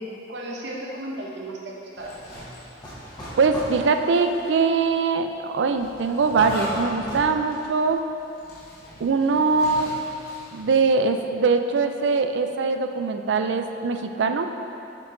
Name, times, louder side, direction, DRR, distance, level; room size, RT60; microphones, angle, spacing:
voice 1, 0.0-2.2, right 1 dB, 70° right, -2 dB, 0.9 m, -35 dB
Zipper (clothing), 1.9-4.5 4.8-4.9 5.7-10.7, equal, 60° left, 1.3 m, -39 dB
sound 1, 2.8-3.8 6.4-7.3, equal, 25° left, 1.3 m, -36 dB
voice 2, 3.4-8.0 9.0-9.9 10.5-14.5, right 4 dB, 85° right, 7 dB, 0.4 m, -22 dB
6.9 x 4.5 x 3.8 m, 2.8 s
head